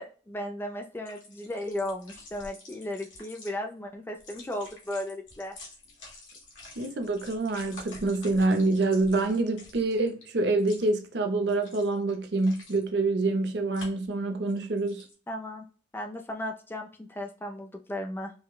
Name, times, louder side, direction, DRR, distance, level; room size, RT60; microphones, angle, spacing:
voice 1, 0.0-5.6 15.3-15.7 15.9-18.3, left 1 dB, 10° left, 0.3 m, -35 dB
sound 1, 1.0-3.5 4.1-10.2 10.6-11.0 11.5-12.9 13.7-14.1 14.5-15.1, left 2 dB, 85° left, 1.4 m, -49 dB
voice 2, 6.8-15.0, right 2 dB, 60° right, 0.6 m, -26 dB
4.8 x 2.1 x 2.2 m
head